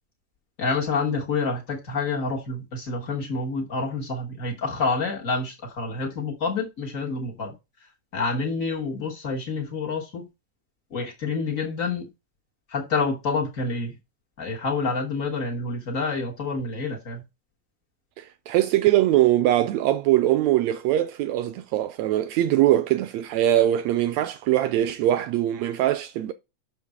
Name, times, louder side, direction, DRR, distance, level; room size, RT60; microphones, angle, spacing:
voice 1, 0.6-7.5 8.1-10.3 10.9-12.1 12.7-14.0 14.4-17.2, left 4 dB, 75° left, 0.7 m, -28 dB
voice 2, 18.2-26.3, right 13 dB, 80° right, 1.6 m, -22 dB
6.3 x 5.6 x 4.8 m
omnidirectional pair, 3.5 m